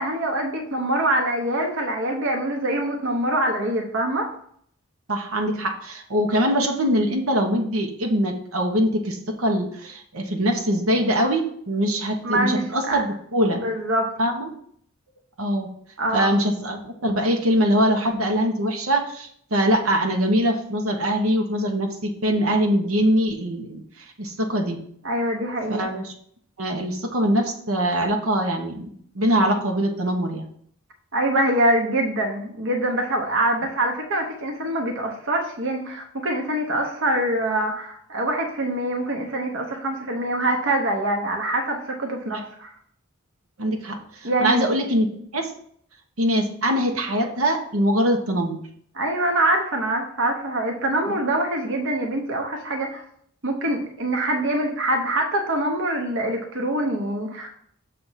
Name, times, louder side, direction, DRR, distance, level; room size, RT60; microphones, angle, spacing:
voice 1, 0.0-4.3 12.2-13.0 13.5-14.1 16.0-16.3 25.0-25.9 31.1-42.7 44.2-44.7 48.9-53.0 53.4-57.5, right 1 dB, 65° right, 2 dB, 1.0 m, -24 dB
voice 2, 5.1-13.6 14.2-14.5 15.4-15.7 16.1-23.8 24.2-24.8 25.7-26.1 26.6-30.5 42.3-42.4 43.6-45.1 45.3-45.5 46.2-48.6 51.1-51.2, equal, 90° right, 3 dB, 1.2 m, -23 dB
6.6 x 3.4 x 5.7 m, 0.63 s
head